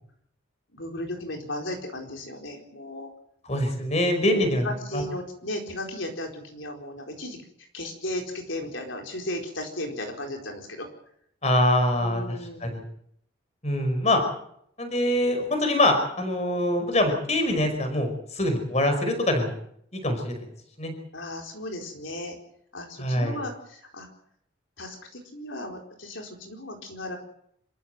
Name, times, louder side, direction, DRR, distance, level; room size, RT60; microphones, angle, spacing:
voice 1, 0.7-3.1 4.3-10.9 12.0-12.6 21.1-22.4 22.7-24.1 24.8-27.2, left 1 dB, 70° left, 2 dB, 4.5 m, -35 dB
voice 2, 3.4-4.7 4.9-5.0 11.4-12.8 13.6-14.2 14.8-19.5 20.0-20.5 20.8-20.9 23.0-23.4, left 1 dB, 35° left, 6 dB, 5.1 m, -24 dB
27.0 x 15.0 x 7.9 m, 0.71 s
head